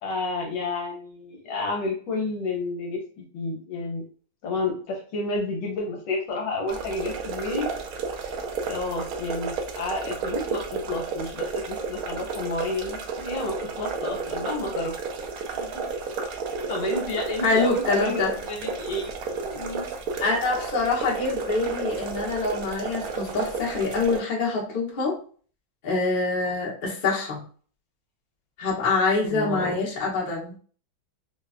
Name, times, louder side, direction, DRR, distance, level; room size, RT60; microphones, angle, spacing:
voice 1, 0.0-4.0 4.4-7.7 8.7-14.9 15.5-15.7 16.7-19.1 19.4-19.9 29.2-29.8, left 2 dB, 70° left, 1 dB, 1.4 m, -30 dB
sound 1, 6.7-24.2, right 4 dB, 85° right, 0.7 m, -32 dB
voice 2, 17.4-18.3 20.2-25.2 25.8-27.4 28.6-30.5, left 3 dB, 40° left, -4 dB, 0.8 m, -25 dB
4.3 x 2.3 x 2.4 m, 0.43 s
omnidirectional pair, 2.2 m